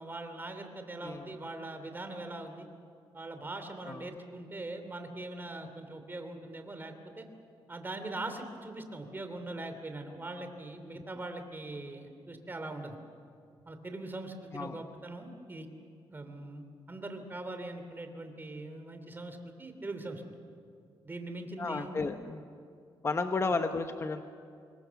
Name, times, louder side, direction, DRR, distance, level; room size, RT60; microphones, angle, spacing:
voice 1, 0.0-2.7 3.1-7.3 7.7-13.0 13.7-15.7 16.1-20.2 21.0-21.9, right 2 dB, 20° right, 7 dB, 2.8 m, -41 dB
voice 2, 1.0-1.3 3.8-4.1 10.9-11.0 14.5-14.8 21.6-22.4 23.0-24.2, left 3 dB, 30° left, 7 dB, 1.0 m, -33 dB
25.5 x 22.0 x 7.1 m, 2.4 s
cardioid pair, 125°, 9 cm